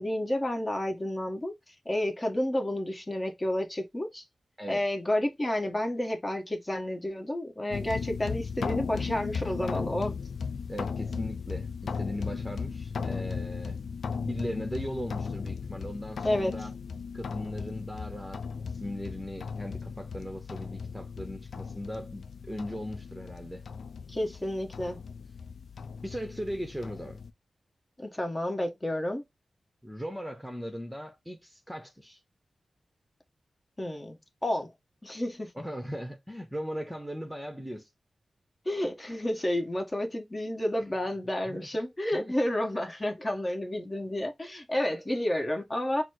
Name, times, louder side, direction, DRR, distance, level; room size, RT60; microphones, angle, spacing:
voice 1, 0.0-4.2 4.7-10.2 16.2-16.5 24.1-25.0 28.0-29.2 33.8-34.7 35.0-35.5 38.6-46.0, left 1 dB, 30° left, 1.3 m, -30 dB
sound 1, 7.7-27.3, left 5 dB, 80° left, 0.5 m, -36 dB
voice 2, 10.7-13.8 14.2-16.7 17.1-23.6 26.0-27.2 29.8-32.2 35.6-37.9 41.5-41.7 42.1-42.3, equal, 5° right, 1.0 m, -38 dB
4.1 x 2.1 x 4.5 m
cardioid pair, 55°, 0 cm